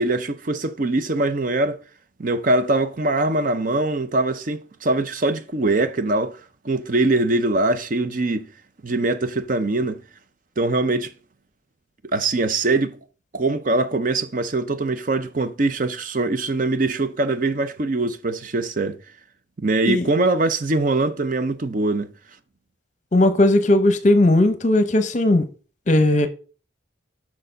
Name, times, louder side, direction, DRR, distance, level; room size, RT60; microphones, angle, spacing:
voice 1, 0.0-1.8 2.2-6.4 6.6-8.5 8.8-10.0 10.6-11.1 12.1-13.0 13.3-19.0 19.6-22.1, right 2 dB, 40° right, 0.5 m, -22 dB
voice 2, 23.1-25.5 25.9-26.3, left 1 dB, 35° left, 0.8 m, -17 dB
6.7 x 6.0 x 5.1 m
head